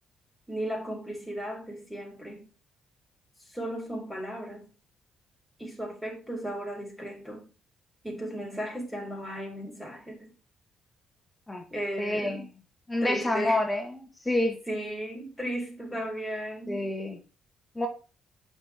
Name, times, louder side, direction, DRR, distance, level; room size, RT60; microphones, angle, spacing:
voice 1, 0.5-2.5 3.5-4.7 5.6-7.5 8.0-10.3 11.7-12.5 13.0-13.6 14.7-16.9, right 1 dB, ahead, 4.7 m, -35 dB
voice 2, 12.0-12.4 12.9-14.6 16.7-17.2 17.8-17.9, left 1 dB, 15° left, 1.8 m, -28 dB
8.8 x 6.3 x 3.7 m
cardioid pair, 90°, 0 cm